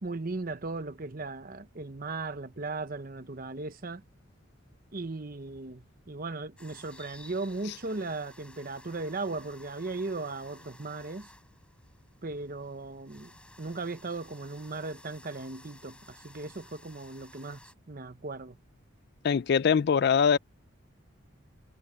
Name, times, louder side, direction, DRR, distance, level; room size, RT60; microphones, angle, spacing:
voice 1, 0.0-4.0 4.9-11.3 12.2-18.6, right 3 dB, 45° right, 0.9 m, -37 dB
sound 1, 6.6-17.7, left 1 dB, 5° left, 7.6 m, -55 dB
voice 2, 19.2-20.4, left 6 dB, 50° left, 0.3 m, -22 dB
head